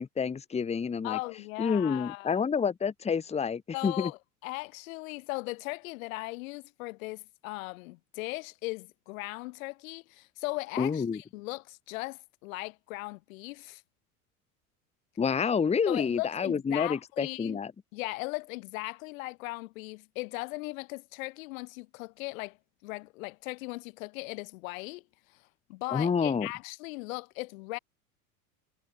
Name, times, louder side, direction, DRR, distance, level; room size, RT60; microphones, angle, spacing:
voice 1, 0.0-1.2 1.6-4.1 10.8-11.2 15.2-17.7 25.9-26.5, left 6 dB, 15° left, 0.9 m, -28 dB
voice 2, 1.0-2.4 3.7-13.8 15.9-17.6 17.9-22.6 22.8-25.0 25.3-27.8, left 23 dB, 65° left, 1.1 m, -38 dB
hypercardioid pair, 75°, 44 cm